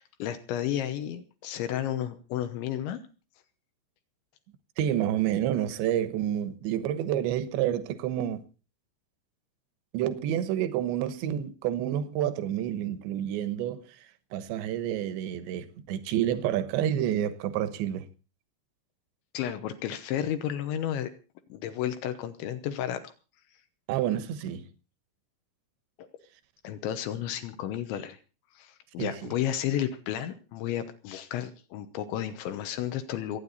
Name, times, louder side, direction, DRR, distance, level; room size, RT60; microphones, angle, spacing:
voice 1, 0.0-3.0 19.3-21.1 21.5-23.0 26.0-26.1 26.6-28.2 28.6-33.4, left 11 dB, 75° left, 3.2 m, -32 dB
voice 2, 4.8-8.4 9.9-13.9 14.3-18.1 23.9-24.6 29.0-29.1, right 11 dB, 70° right, 3.1 m, -29 dB
28.0 x 9.5 x 4.1 m
omnidirectional pair, 5.8 m